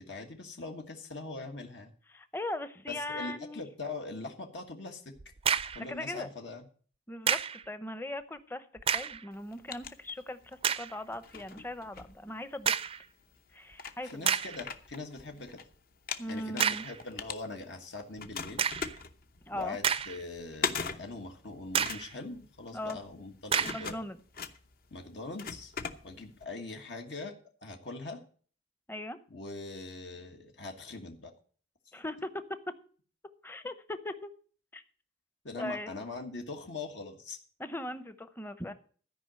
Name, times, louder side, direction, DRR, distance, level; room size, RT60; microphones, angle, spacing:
voice 1, 0.0-1.9 2.9-5.1 5.7-6.7 14.0-15.6 16.3-18.7 19.5-24.0 24.9-25.7 26.0-27.4 27.6-28.2 29.3-31.3 35.4-37.4, left 3 dB, 75° left, 3 dB, 1.5 m, -42 dB
voice 2, 2.1-3.7 5.6-6.3 7.1-8.7 8.9-12.7 13.5-14.3 16.2-16.8 19.5-19.8 22.7-23.0 23.6-24.2 28.9-29.2 31.9-32.3 33.4-34.3 34.7-34.8 35.6-35.9 37.6-38.7, left 1 dB, 10° left, 12 dB, 0.7 m, -39 dB
sound 1, 5.2-5.9 7.3-7.6 8.8-9.2 9.8-9.9 10.6-11.0 12.7-13.0 13.7-13.8 14.3-14.6 16.6-17.0 18.6-19.0 19.6-20.4 20.8-20.9 21.7-22.1 23.5-23.9, right 7 dB, 30° right, 0.4 m, -30 dB
sound 2, 9.3-10.6 11.1-12.8 13.4-13.5 13.7-15.6 15.9-17.9 18.2-26.5, left 6 dB, 55° left, 0.8 m, -40 dB
13.5 x 5.2 x 7.6 m, 0.43 s
head